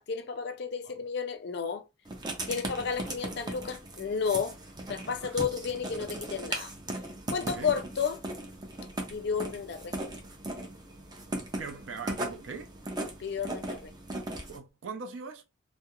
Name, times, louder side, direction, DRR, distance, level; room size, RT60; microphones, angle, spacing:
voice 1, 0.0-1.8 2.5-4.6 4.9-6.7 7.3-8.2 9.1-10.0 13.2-13.9, left 6 dB, 55° left, 0.4 m, -32 dB
Writing, 2.1-14.6, right 1 dB, 20° right, 0.5 m, -38 dB
voice 2, 7.4-7.8 11.5-12.7 14.5-15.4, right 5 dB, 75° right, 0.4 m, -41 dB
2.3 x 2.0 x 2.9 m
head